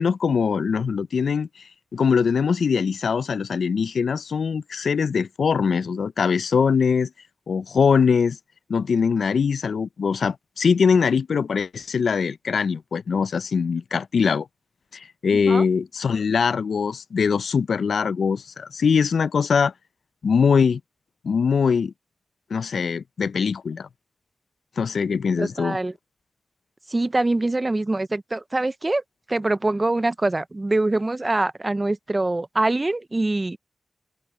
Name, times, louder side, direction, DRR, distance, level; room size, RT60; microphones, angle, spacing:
voice 1, 0.0-1.5 1.9-7.1 7.5-8.4 8.7-14.5 14.9-19.7 20.2-20.8 21.2-21.9 22.5-23.9 24.8-25.8, left 6 dB, 65° left, 0.4 m, -22 dB
voice 2, 15.3-15.6 25.4-25.9 26.9-29.0 29.3-33.6, right 2 dB, 20° right, 0.5 m, -24 dB
wide cardioid pair, 165°, 0 cm